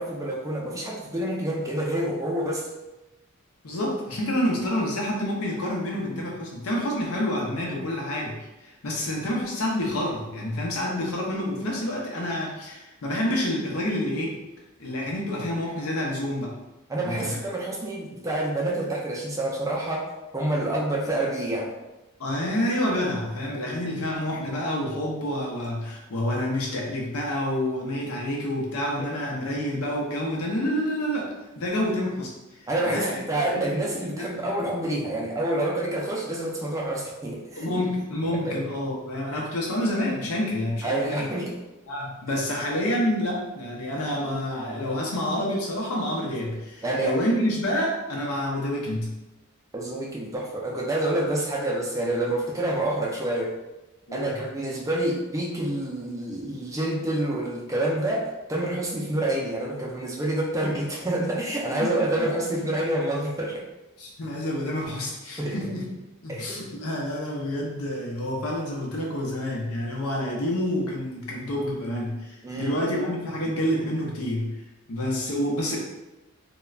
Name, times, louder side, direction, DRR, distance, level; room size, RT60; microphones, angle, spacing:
voice 1, 0.0-2.6 16.9-21.7 29.0-29.1 32.7-37.7 38.4-38.6 40.8-41.6 46.8-47.1 49.7-53.5 54.1-63.6 65.4-65.6 66.3-66.4 72.4-72.8, right 1 dB, 15° right, -2 dB, 0.4 m, -27 dB
voice 2, 3.6-14.4 14.8-16.6 17.0-17.4 22.2-33.2 33.5-34.5 37.6-41.3 41.9-49.1 54.1-54.4 61.8-62.3 64.0-65.9 66.2-74.6 74.9-75.8, left 1 dB, 80° left, -2 dB, 0.7 m, -28 dB
3.1 x 2.2 x 2.3 m, 1.0 s
head